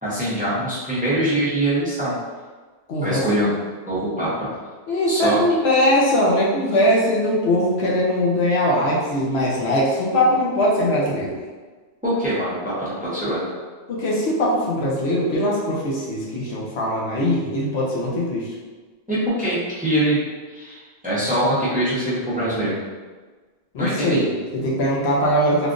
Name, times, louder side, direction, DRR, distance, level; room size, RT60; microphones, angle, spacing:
voice 1, 0.0-2.1 3.0-3.5 3.9-4.5 5.1-5.4 12.0-13.5 19.1-20.2 20.5-22.8 23.8-24.2, right 1 dB, 10° right, -9 dB, 0.7 m, -23 dB
voice 2, 2.9-3.2 4.9-11.4 13.9-18.5 23.7-25.7, left 1 dB, 75° left, -4 dB, 1.0 m, -21 dB
3.5 x 2.4 x 2.5 m, 1.4 s
omnidirectional pair, 1.1 m